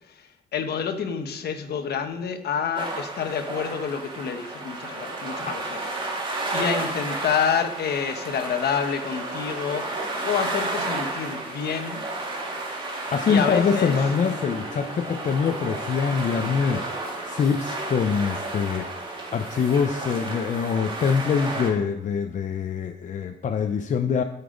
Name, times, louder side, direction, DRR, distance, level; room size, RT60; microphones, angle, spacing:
voice 1, 0.1-6.1 6.5-12.0 13.2-14.0, left 7 dB, 60° left, 7 dB, 1.3 m, -28 dB
sound 1, 2.8-21.7, right 2 dB, 25° right, 2.5 m, -32 dB
voice 2, 13.1-16.9 17.3-24.2, left 6 dB, 45° left, 7 dB, 0.6 m, -24 dB
13.0 x 7.0 x 5.1 m, 0.87 s
cardioid pair, 135°, 18 cm